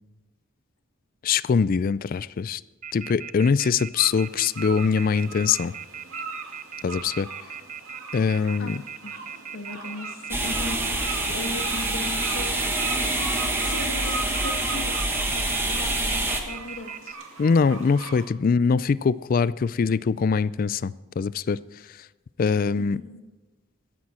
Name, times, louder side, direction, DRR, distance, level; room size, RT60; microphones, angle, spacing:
voice 1, 1.2-2.6 2.9-5.8 6.8-7.3 8.1-8.8 17.4-21.6 21.9-22.0 22.4-23.0, left 5 dB, 45° left, 19 dB, 0.3 m, -23 dB
Telephone, 2.8-17.1, right 8 dB, 35° right, 0.6 m, -38 dB
sound 1, 3.9-18.3, right 3 dB, 85° right, 2.4 m, -39 dB
voice 2, 9.5-10.9 11.3-12.6 13.6-17.2 22.8-23.2, left 2 dB, 85° left, 5 dB, 1.7 m, -37 dB
sound 2, 10.3-16.4, right 1 dB, 10° right, 1.5 m, -26 dB
16.0 x 13.5 x 4.3 m, 1.2 s
head